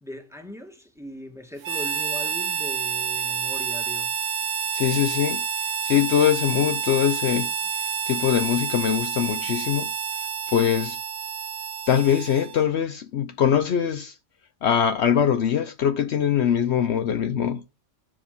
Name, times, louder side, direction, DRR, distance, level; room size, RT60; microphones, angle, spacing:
voice 1, 0.0-4.1, equal, ahead, 1.8 m, -39 dB
Harmonica, 1.6-12.7, right 7 dB, 85° right, 1.0 m, -29 dB
voice 2, 4.7-5.4 5.8-7.5 8.1-9.9 10.5-11.0 11.9-14.1 14.6-17.6, left 9 dB, 65° left, 0.9 m, -22 dB
9.6 x 4.9 x 6.6 m
omnidirectional pair, 1.3 m